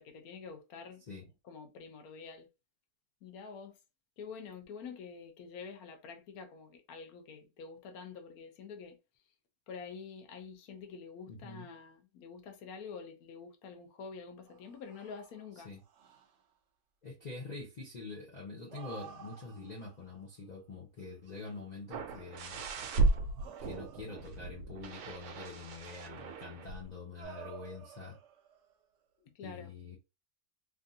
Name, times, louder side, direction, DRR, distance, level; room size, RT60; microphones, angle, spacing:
voice 1, 0.0-1.0 1.4-2.5 3.2-3.8 4.2-9.0 9.7-15.7 29.2-29.7, left 5 dB, 80° left, 1.2 m, -47 dB
voice 2, 11.3-11.7 15.6-15.8 17.0-22.6 23.6-28.2 29.4-30.0, left 3 dB, 45° left, 0.6 m, -45 dB
sound 1, 14.5-16.4 18.5-20.1 21.0-21.6 22.6-24.5 26.2-28.7, right 8 dB, 60° right, 0.9 m, -53 dB
sound 2, 21.9-26.9 27.2-27.3, right 3 dB, 90° right, 1.1 m, -35 dB
3.4 x 2.4 x 2.6 m
omnidirectional pair, 1.5 m